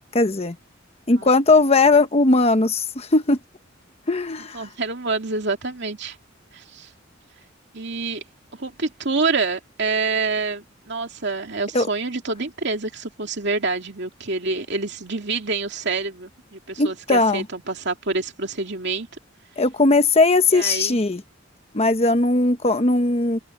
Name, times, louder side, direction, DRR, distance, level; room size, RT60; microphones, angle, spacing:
voice 1, 0.1-0.6 1.1-3.4 4.1-4.7 11.7-11.9 16.8-17.4 19.6-21.2 21.7-23.4, left 3 dB, 30° left, 1.0 m, -18 dB
voice 2, 4.5-6.2 6.5-6.9 7.7-8.2 8.5-19.1 20.5-21.0, right 3 dB, 60° right, 2.6 m, -27 dB
open air
head